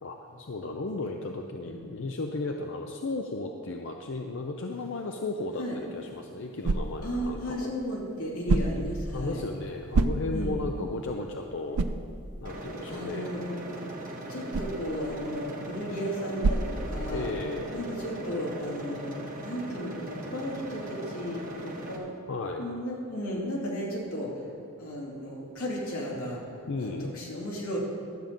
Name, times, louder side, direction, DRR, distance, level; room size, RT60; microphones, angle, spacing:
voice 1, 0.0-7.7 9.1-11.9 12.4-13.3 17.1-17.7 22.3-22.6 26.7-27.1, left 2 dB, 55° left, 3 dB, 0.5 m, -34 dB
voice 2, 0.6-1.1 1.6-1.8 5.5-5.8 7.0-9.4 10.3-10.5 12.9-14.0 14.3-17.3 17.7-19.1 19.4-22.2 22.6-24.5 24.8-26.4 26.8-27.8, equal, 90° left, -4 dB, 2.7 m, -35 dB
sound 1, 5.8-17.5, right 3 dB, 90° right, 0.5 m, -33 dB
sound 2, 12.4-22.0, right 1 dB, 40° right, 1.2 m, -39 dB
12.0 x 5.2 x 7.4 m, 2.4 s
head